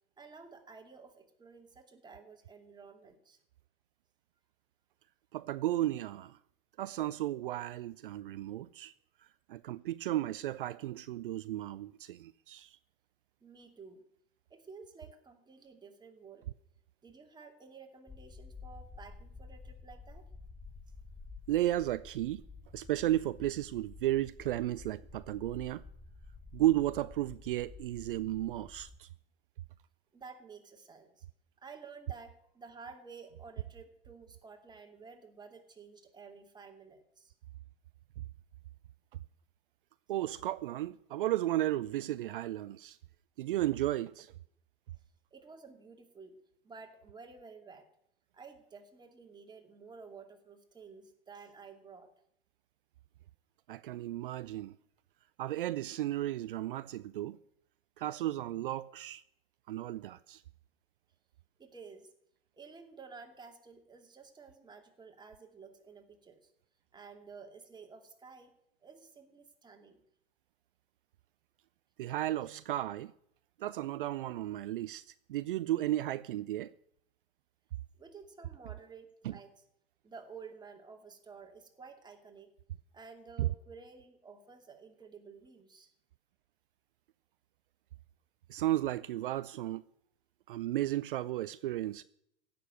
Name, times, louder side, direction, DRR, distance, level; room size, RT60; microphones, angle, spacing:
voice 1, 0.2-3.4 13.4-14.0 14.5-16.5 17.0-20.3 30.1-31.3 31.6-37.3 44.9-45.0 45.3-46.4 46.6-47.9 48.3-52.1 61.6-62.1 62.5-66.5 66.9-68.6 68.8-70.0 78.0-79.5 80.0-82.5 82.9-85.9, right 5 dB, 15° right, 2.5 m, -52 dB
voice 2, 5.3-6.4 6.8-8.9 9.2-12.8 21.5-22.4 22.7-25.8 26.5-29.1 40.1-43.0 43.4-44.3 53.7-54.8 55.4-57.4 58.0-59.2 59.7-60.4 72.0-73.1 73.6-76.7 79.2-79.4 83.4-83.5 88.5-89.8 90.5-92.0, right 14 dB, 65° right, 0.5 m, -34 dB
sound 1, 18.1-29.0, left 4 dB, 5° left, 0.6 m, -51 dB
16.0 x 6.9 x 9.2 m
figure-of-eight pair, 90°, 29 cm